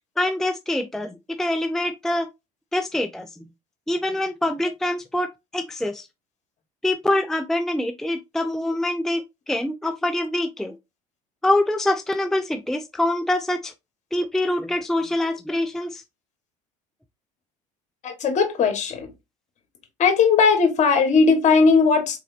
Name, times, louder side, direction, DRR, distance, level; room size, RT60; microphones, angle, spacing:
voice 1, 0.2-2.3 2.7-3.3 3.9-6.1 6.8-10.8 11.4-13.7 14.1-16.0, left 1 dB, ahead, 0.4 m, -25 dB
voice 2, 18.0-19.1 20.0-22.2, left 5 dB, 45° left, 1.5 m, -18 dB
4.2 x 3.8 x 2.7 m
hypercardioid pair, 80°, 16 cm